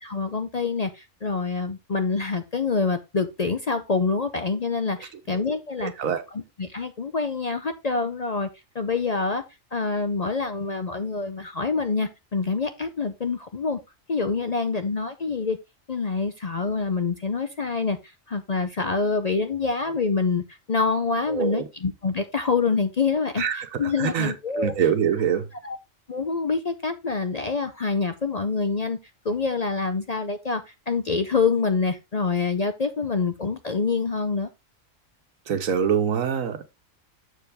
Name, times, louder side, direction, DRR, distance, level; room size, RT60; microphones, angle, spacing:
voice 1, 0.0-5.9 6.3-8.5 8.7-9.4 9.7-13.8 14.1-15.6 15.9-18.0 18.3-20.4 20.7-24.7 25.6-25.8 26.1-29.0 29.2-34.5, left 4 dB, 45° left, 0.5 m, -26 dB
voice 2, 5.8-6.2 21.3-21.7 23.4-25.5 35.5-36.6, right 8 dB, 90° right, 1.4 m, -25 dB
7.0 x 6.9 x 3.4 m
omnidirectional pair, 1.4 m